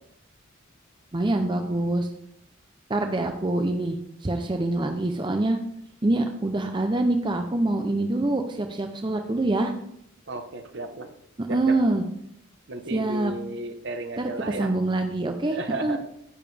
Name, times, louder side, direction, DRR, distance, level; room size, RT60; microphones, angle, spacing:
voice 1, 1.1-2.1 2.9-5.6 6.0-9.7 11.4-12.0 12.9-13.3 14.2-16.0, right 2 dB, 20° right, 5 dB, 0.5 m, -25 dB
voice 2, 10.3-11.1 11.5-11.8 12.7-14.7 15.4-16.0, right 2 dB, 55° right, 6 dB, 1.0 m, -34 dB
9.9 x 9.0 x 3.3 m, 0.74 s
head